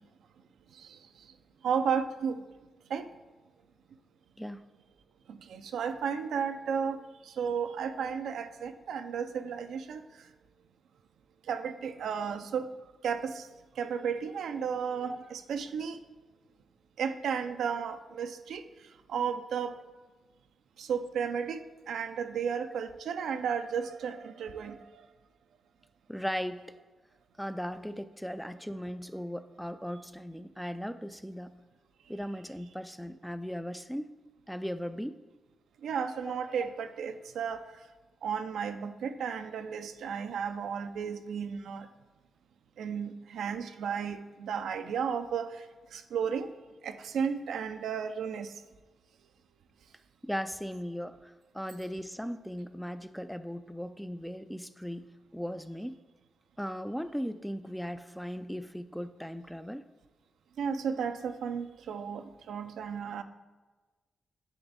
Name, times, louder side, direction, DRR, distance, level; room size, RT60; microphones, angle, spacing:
voice 1, 1.6-2.4 2.9-3.1 5.3-10.3 11.5-12.7 13.0-13.5 13.8-16.0 17.0-18.7 19.1-19.8 20.8-25.0 35.8-37.6 38.2-41.9 42.8-45.7 45.9-46.5 46.8-48.6 60.6-63.2, right 7 dB, 85° right, 9 dB, 0.4 m, -33 dB
voice 2, 26.1-26.7 27.4-31.6 32.1-34.1 34.5-35.2 36.2-36.3 36.6-36.7 50.2-55.1 55.3-56.0 56.6-59.8, equal, ahead, 11 dB, 0.3 m, -37 dB
10.0 x 3.5 x 4.0 m, 1.3 s
cardioid pair, 90°, 0 cm